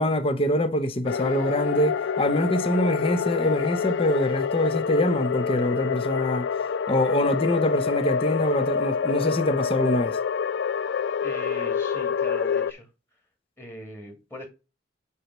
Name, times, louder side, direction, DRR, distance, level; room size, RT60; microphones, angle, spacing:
voice 1, 0.0-6.5 6.9-10.2, left 1 dB, 30° left, 0.7 m, -24 dB
sound 1, 1.0-12.7, left 6 dB, 60° left, 0.3 m, -27 dB
voice 2, 11.2-12.9 13.6-14.5, equal, 15° left, 2.0 m, -40 dB
8.4 x 3.1 x 5.9 m
head